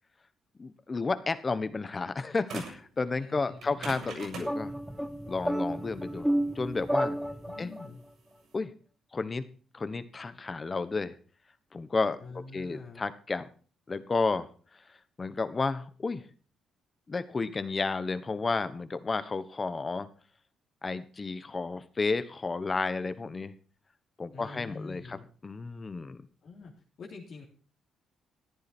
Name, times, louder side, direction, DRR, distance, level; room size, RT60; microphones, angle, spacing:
voice 1, 0.6-4.7 5.3-6.3 6.5-7.2 7.6-7.7 8.5-8.7 9.1-9.4 9.7-11.1 11.7-12.2 12.5-13.5 13.9-14.5 15.2-16.2 17.1-20.1 20.8-23.5 24.2-25.2 25.4-26.2, left 4 dB, 30° left, 13 dB, 1.2 m, -32 dB
sound 1, 2.5-2.9 3.6-8.5, right 4 dB, 70° right, 7.5 m, -43 dB
voice 2, 3.1-3.9 7.4-8.0 12.2-13.0 24.3-25.2 26.4-26.7 27.0-27.5, left 4 dB, 60° left, -1 dB, 3.1 m, -45 dB
sound 2, 4.4-7.9, equal, 5° right, 1.4 m, -31 dB
14.0 x 10.5 x 4.5 m, 0.41 s
cardioid pair, 90°, 0 cm